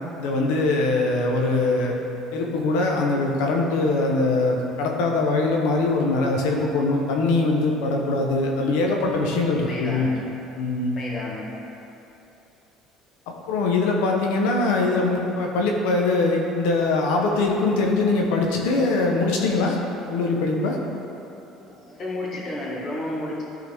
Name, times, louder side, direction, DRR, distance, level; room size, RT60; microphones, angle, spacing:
voice 1, 0.2-1.9 2.3-10.1 10.6-11.0 13.3-19.8 20.1-20.8, left 3 dB, 85° left, 0 dB, 0.8 m, -22 dB
voice 2, 9.7-10.2 11.0-11.5 21.6-23.4, left 1 dB, 45° left, -4 dB, 1.6 m, -32 dB
11.0 x 3.9 x 3.5 m, 2.9 s
cardioid pair, 110°, 0 cm